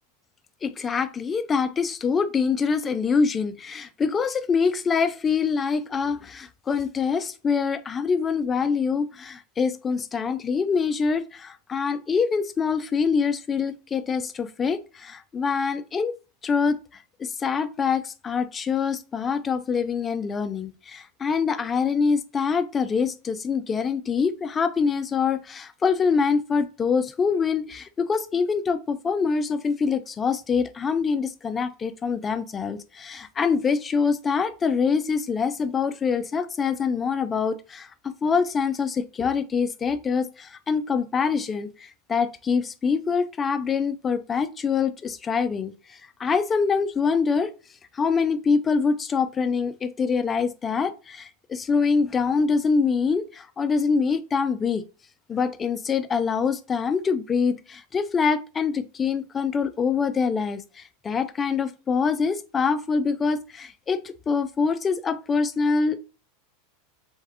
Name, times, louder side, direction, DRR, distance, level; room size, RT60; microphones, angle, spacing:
voice 1, 0.6-16.1 16.4-16.8 17.2-47.5 47.9-54.8 55.3-66.0, left 5 dB, 25° left, 0.5 m, -25 dB
3.5 x 3.4 x 3.3 m
hypercardioid pair, 90°, 0 cm